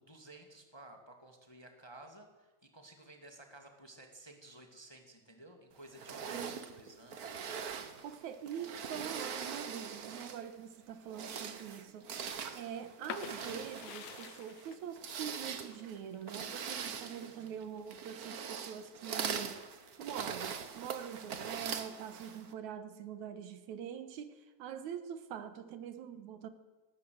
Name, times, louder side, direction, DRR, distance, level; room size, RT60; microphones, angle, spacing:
voice 1, 0.0-7.4 12.7-12.9 17.2-17.6, right 1 dB, 10° left, 1.6 m, -55 dB
sound 1, 5.9-10.5 11.0-22.5, right 6 dB, 60° right, 0.9 m, -42 dB
voice 2, 6.3-6.8 8.0-12.2 12.5-19.6 20.0-26.5, right 8 dB, 85° right, 2.6 m, -44 dB
sound 2, 13.0-18.7 19.1-20.0, left 9 dB, 85° left, 2.6 m, -49 dB
19.5 x 18.0 x 7.8 m
omnidirectional pair, 3.3 m